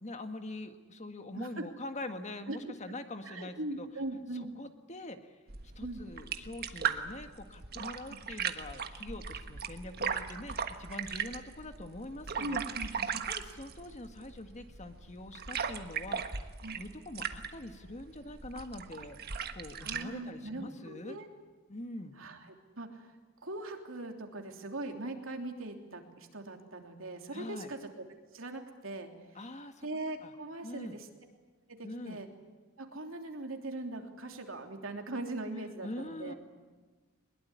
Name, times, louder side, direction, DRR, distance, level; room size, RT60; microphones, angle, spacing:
voice 1, 0.0-3.9 4.6-5.4 5.8-12.6 13.3-19.2 19.5-21.2 21.7-22.1 27.3-27.7 29.4-29.9 30.2-30.3 30.6-31.0 31.8-32.2 35.6-36.3, left 1 dB, 35° left, 7 dB, 1.8 m, -44 dB
voice 2, 1.3-1.6 2.5-2.7 3.2-4.5 5.8-6.1 8.1-8.2 10.3-10.7 12.4-13.2 16.6-16.8 19.8-21.3 22.1-23.1 23.4-28.0 28.3-29.4 29.8-31.1 31.7-32.3 32.8-36.4, right 2 dB, 75° right, 4 dB, 3.2 m, -41 dB
sound 1, 5.5-20.0, right 6 dB, 50° right, 1.4 m, -38 dB
22.0 x 21.5 x 9.6 m, 1.3 s
head